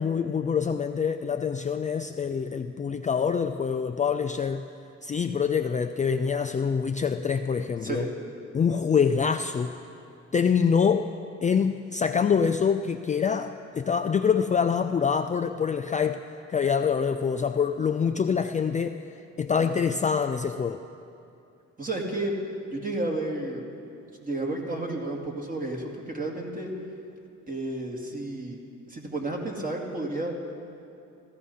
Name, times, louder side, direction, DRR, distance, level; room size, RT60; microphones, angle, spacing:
voice 1, 0.0-4.6 5.0-8.1 8.5-9.7 10.3-11.1 11.4-16.2 16.5-19.0 19.4-20.8, left 6 dB, 25° left, 7 dB, 0.4 m, -25 dB
voice 2, 21.8-22.4 22.7-23.6 24.2-26.7 27.5-28.6 28.9-30.3, right 2 dB, 25° right, 0 dB, 2.5 m, -31 dB
15.5 x 14.0 x 5.5 m, 2.7 s
cardioid pair, 90°, 30 cm